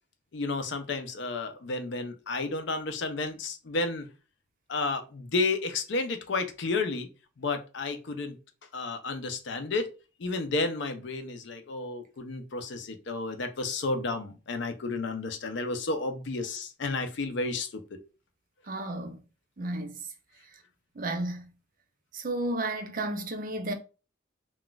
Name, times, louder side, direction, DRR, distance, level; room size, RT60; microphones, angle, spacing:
voice 1, 0.3-4.1 4.7-7.1 7.4-8.4 8.7-9.9 10.2-18.0, left 3 dB, 60° left, 0.5 m, -32 dB
voice 2, 18.7-19.2 19.6-20.0 21.0-21.5 22.1-23.7, right 2 dB, 45° right, 0.5 m, -32 dB
2.4 x 2.3 x 3.8 m
head